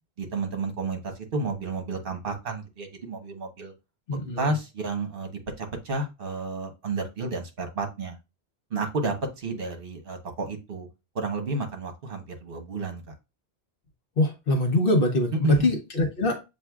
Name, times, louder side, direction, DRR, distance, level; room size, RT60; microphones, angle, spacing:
voice 1, 0.2-3.7 4.4-8.2 8.7-10.9 11.1-13.1 15.4-15.7, right 2 dB, 60° right, 1.2 m, -31 dB
voice 2, 4.1-4.5 14.2-16.4, left 1 dB, 60° left, 1.0 m, -23 dB
7.4 x 2.6 x 2.3 m
omnidirectional pair, 1.1 m